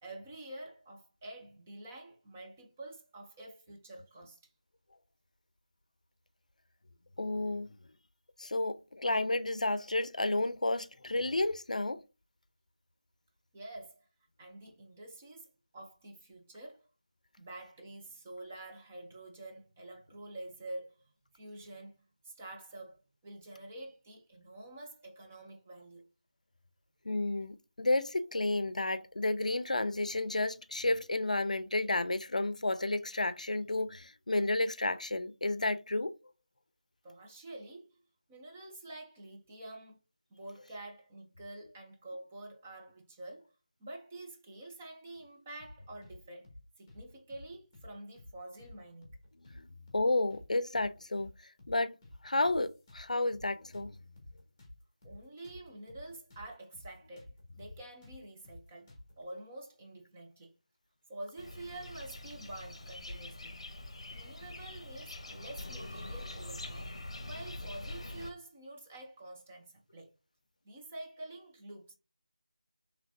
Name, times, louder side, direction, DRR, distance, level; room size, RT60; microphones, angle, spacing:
voice 1, 0.0-4.5 13.5-14.1 14.4-15.5 15.7-16.9 17.4-26.1 37.0-38.0 38.3-40.0 40.3-43.5 43.8-46.5 46.8-49.1 55.0-60.5 61.1-63.6 64.1-66.9 67.2-70.1 70.6-71.9, right 1 dB, 10° right, 0.5 m, -48 dB
voice 2, 7.2-7.7 8.4-12.0 27.0-36.2 49.5-49.7 49.9-51.3 51.7-52.0 52.2-54.0, left 2 dB, 80° left, 0.5 m, -31 dB
sound 1, 45.6-46.2 46.4-46.6 46.9-47.9 48.2-48.3 48.6-49.6 49.9-50.0 50.3-51.3 51.6-51.7 52.0-53.5 53.7-56.5 56.7-56.9 57.2-59.2, left 1 dB, 20° left, 1.2 m, -52 dB
sound 2, 61.4-68.3, left 2 dB, 50° left, 0.8 m, -44 dB
5.0 x 3.3 x 2.6 m
figure-of-eight pair, 175°, 4 cm